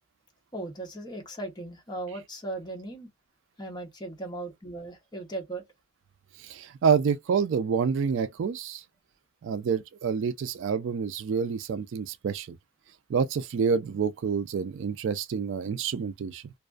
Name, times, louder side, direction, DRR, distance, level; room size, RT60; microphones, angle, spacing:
voice 1, 0.5-3.1 3.6-5.6, right 2 dB, 20° left, 0.7 m, -37 dB
voice 2, 6.4-8.8 9.4-12.5 13.1-16.5, right 6 dB, 60° right, 0.3 m, -28 dB
2.4 x 2.3 x 2.3 m
head